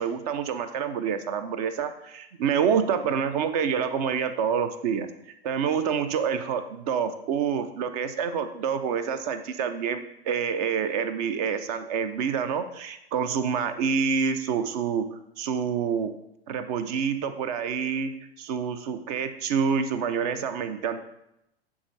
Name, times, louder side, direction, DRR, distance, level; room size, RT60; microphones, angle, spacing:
voice 1, 0.0-5.1 5.4-16.1 16.5-21.0, right 7 dB, 40° right, 11 dB, 0.5 m, -27 dB
9.4 x 3.6 x 3.2 m, 0.83 s
figure-of-eight pair, 95°, 31 cm